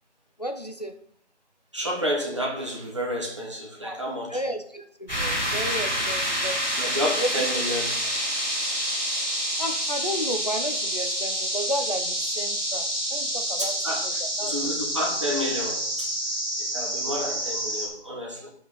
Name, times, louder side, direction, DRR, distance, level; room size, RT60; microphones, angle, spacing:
voice 1, 0.4-0.9 3.8-4.0 4.3-6.6 7.2-7.3 9.6-13.7 14.0-14.5, equal, 35° left, 0.7 m, -32 dB
voice 2, 1.7-4.4 6.8-7.9 13.6-14.0 14.4-16.1 16.6-18.5, equal, 25° right, 1.5 m, -30 dB
sound 1, 5.1-17.9, equal, ahead, 2.5 m, -28 dB
15.0 x 5.9 x 4.2 m
figure-of-eight pair, 175°, 35 cm